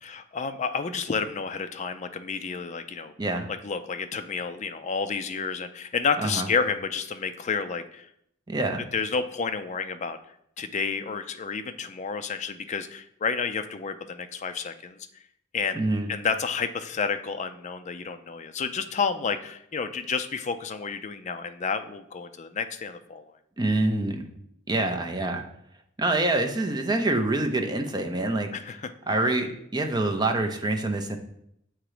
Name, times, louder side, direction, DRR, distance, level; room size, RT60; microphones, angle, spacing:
voice 1, 0.0-3.1 3.5-8.1 8.9-10.2 10.6-15.0 15.5-15.8 16.1-23.3 28.5-28.9, left 5 dB, 35° left, 9 dB, 0.4 m, -30 dB
voice 2, 8.5-8.8 15.7-16.1 23.6-24.2 24.7-25.4 26.0-28.5 29.1-31.2, right 2 dB, 20° right, 4 dB, 0.6 m, -26 dB
7.4 x 3.0 x 4.9 m, 0.74 s
head